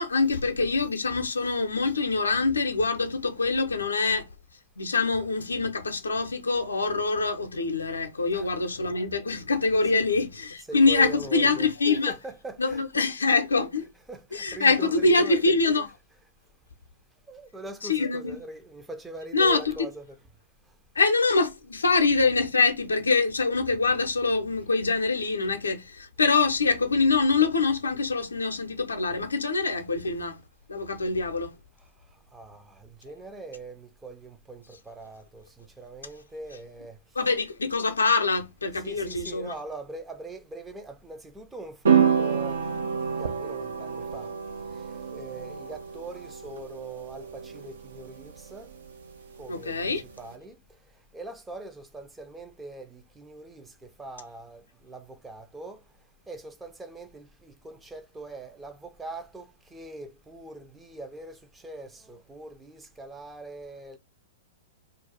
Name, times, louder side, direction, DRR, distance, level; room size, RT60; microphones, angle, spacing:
voice 1, 0.0-4.2 4.8-12.1 12.6-13.9 14.3-15.9 17.9-18.4 19.3-19.6 21.0-30.4 30.7-31.5 37.2-39.5 49.5-50.0, left 3 dB, 75° left, 0.5 m, -24 dB
voice 2, 8.3-8.7 9.9-10.1 10.7-11.7 12.1-13.3 14.1-15.6 17.3-20.2 31.8-37.0 38.7-44.3 44.7-48.7 49.4-50.6 51.1-55.8 56.3-64.0, right 2 dB, 10° right, 0.4 m, -42 dB
sound 1, 41.9-50.3, right 7 dB, 65° right, 0.5 m, -29 dB
2.5 x 2.3 x 3.9 m
figure-of-eight pair, 105°, 0 cm